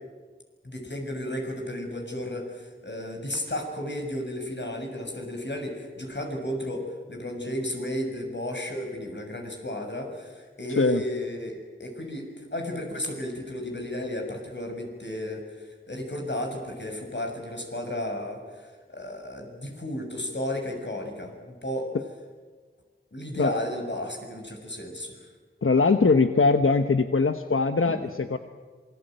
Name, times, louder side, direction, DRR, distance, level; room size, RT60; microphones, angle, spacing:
voice 1, 0.6-21.9 23.1-25.2 27.8-28.1, left 1 dB, 60° left, 2 dB, 6.8 m, -33 dB
voice 2, 10.7-11.0 23.4-23.5 25.6-28.4, left 4 dB, 90° left, 8 dB, 1.0 m, -21 dB
27.0 x 22.0 x 9.2 m, 1.5 s
wide cardioid pair, 45°, 21 cm